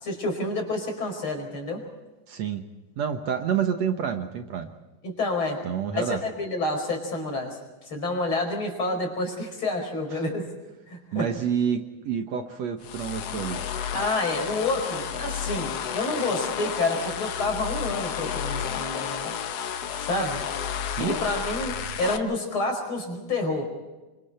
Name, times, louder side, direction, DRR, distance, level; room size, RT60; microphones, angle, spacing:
voice 1, 0.0-1.8 5.0-5.6 5.9-10.5 10.9-11.2 13.9-19.3 20.0-20.4 21.0-23.7, left 2 dB, 40° left, 3 dB, 5.7 m, -29 dB
voice 2, 2.3-2.7 3.0-4.7 5.6-6.2 10.1-10.2 11.1-13.6 21.0-21.2, right 8 dB, 65° right, 6 dB, 2.3 m, -28 dB
sound 1, 12.8-22.2, left 8 dB, 60° left, 2.1 m, -31 dB
29.0 x 24.5 x 4.4 m, 1.1 s
omnidirectional pair, 3.4 m